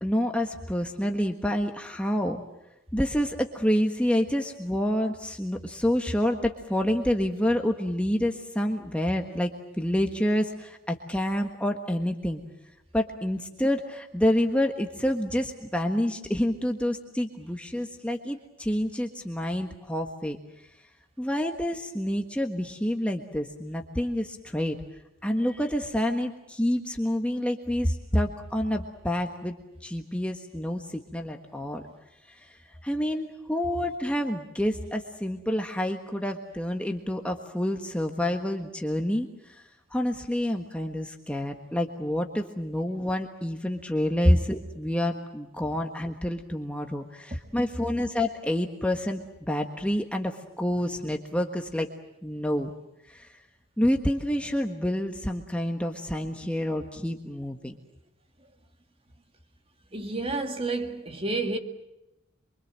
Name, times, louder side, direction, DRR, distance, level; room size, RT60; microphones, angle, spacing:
voice 1, 0.0-2.4 2.9-9.5 9.8-12.4 12.9-20.4 21.2-24.8 25.2-29.5 29.8-31.8 32.4-32.5 32.8-39.6 39.9-49.2 49.5-51.9 52.2-52.7 53.1-53.3 53.8-57.8, equal, 5° left, 1.5 m, -28 dB
voice 2, 59.9-61.6, right 1 dB, 25° right, 2.2 m, -25 dB
27.5 x 24.5 x 7.6 m
head